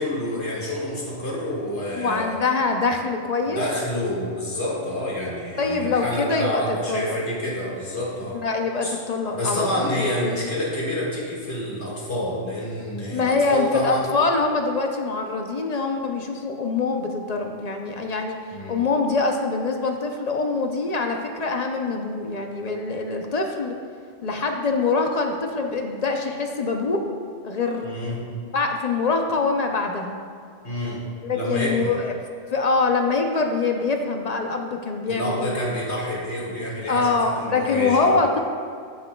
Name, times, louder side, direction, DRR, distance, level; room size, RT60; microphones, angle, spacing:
voice 1, 0.0-2.4 3.5-8.4 8.8-9.0 9.3-14.1 18.5-18.8 27.8-28.2 30.6-31.0 31.3-31.9 35.1-38.2, left 1 dB, 65° left, -5 dB, 2.2 m, -28 dB
voice 2, 1.9-3.6 5.6-7.2 8.3-10.5 13.1-18.4 18.7-23.8 24.2-27.0 27.4-28.2 28.4-30.2 31.2-32.2 32.5-35.5 36.9-38.4, left 3 dB, 45° left, 3 dB, 0.5 m, -24 dB
13.5 x 6.1 x 2.2 m, 2.3 s
omnidirectional pair, 1.2 m